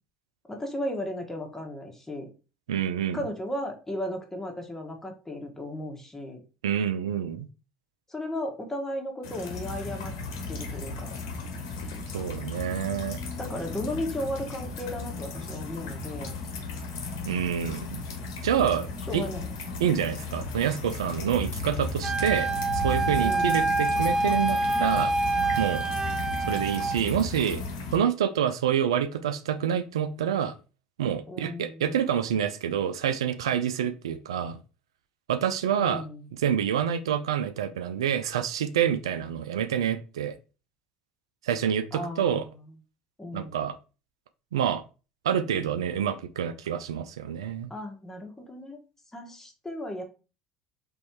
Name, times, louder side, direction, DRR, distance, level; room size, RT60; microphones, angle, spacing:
voice 1, 0.5-2.3 3.1-6.4 8.1-10.1 10.5-11.1 13.4-16.3 19.1-19.5 23.2-23.6 31.3-32.0 35.7-36.4 41.9-42.7 43.2-43.6 47.7-48.8 49.1-50.0, left 1 dB, 15° left, 2 dB, 1.5 m, -35 dB
voice 2, 2.7-3.2 6.6-7.5 12.1-13.2 17.2-17.8 18.4-18.9 19.1-19.2 19.8-25.1 25.6-25.8 26.4-27.6 27.9-30.5 31.0-34.6 35.3-36.0 36.4-40.4 41.4-42.4 43.3-43.7 44.5-44.8 45.2-47.7, right 9 dB, 90° right, 11 dB, 0.4 m, -27 dB
sound 1, 9.2-28.0, left 3 dB, 80° left, 1.1 m, -35 dB
Wind instrument woodwind instrument, 22.0-27.0, right 3 dB, 20° right, 0.5 m, -26 dB
3.5 x 3.1 x 4.5 m, 0.34 s
hypercardioid pair, 75°, 3 cm